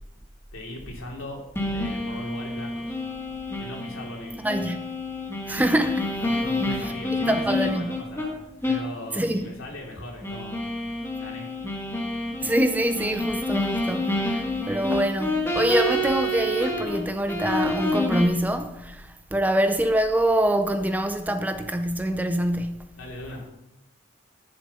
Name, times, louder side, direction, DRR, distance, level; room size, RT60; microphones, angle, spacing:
voice 1, 0.5-2.9 3.6-4.5 6.2-8.3 8.6-10.6 11.2-11.5 23.0-23.5, left 1 dB, 85° left, 2.9 m, -38 dB
sound 1, 1.6-8.3 8.6-8.9 9.2-9.3 10.2-17.0 17.3-18.2, left 1 dB, 10° left, 1.6 m, -28 dB
voice 2, 4.4-4.9 5.5-6.1 6.8-6.9 7.3-7.9 9.1-9.5 12.4-22.9, right 1 dB, 10° right, 0.5 m, -25 dB
10.5 x 7.1 x 5.4 m
head